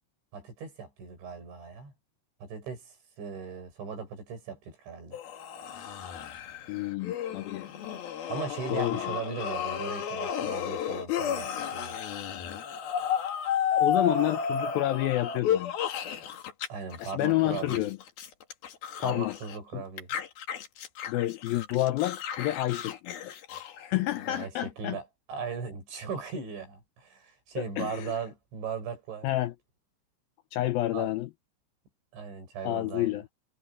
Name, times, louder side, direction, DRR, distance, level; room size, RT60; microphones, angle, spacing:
voice 1, 0.3-1.9 2.4-5.2 8.3-12.0 16.7-17.9 19.0-20.1 24.3-29.3 30.9-31.1 32.1-33.2, right 6 dB, 85° right, 10.0 m, -38 dB
sound 1, 5.1-16.7 16.9-19.6 20.0-24.5, left 8 dB, 60° left, 3.6 m, -33 dB
voice 2, 6.7-7.7 8.7-9.2 13.7-16.1 17.0-18.0 19.0-19.4 19.7-19.8 21.1-23.3 23.8-25.0 27.6-28.1 29.2-29.5 30.5-31.3 32.6-33.3, left 15 dB, 90° left, 2.1 m, -29 dB
omnidirectional pair, 5.1 m